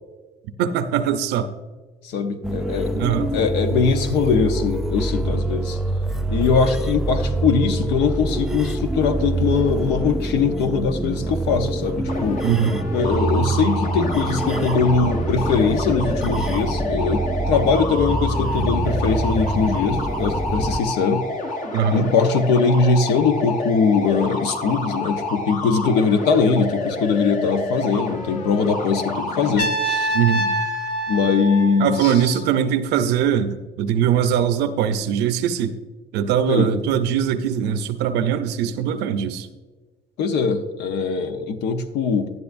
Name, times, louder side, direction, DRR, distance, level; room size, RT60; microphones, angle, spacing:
voice 1, 0.6-1.5 2.9-3.3 12.4-12.8 21.7-22.1 30.1-30.5 31.8-35.8 36.1-39.5, right 8 dB, 85° right, 9 dB, 0.6 m, -21 dB
voice 2, 2.0-5.8 6.3-12.4 12.9-21.3 21.9-30.2 31.1-32.1 36.5-36.7 40.2-42.3, left 5 dB, 85° left, 8 dB, 0.8 m, -21 dB
sound 1, 2.4-20.8, right 2 dB, 5° right, 0.4 m, -25 dB
sound 2, 12.1-29.6, left 2 dB, 50° left, 1.2 m, -29 dB
Trumpet, 29.6-32.5, right 1 dB, 70° left, 1.6 m, -26 dB
11.0 x 10.5 x 2.6 m, 1.3 s
cardioid pair, 110°, 17 cm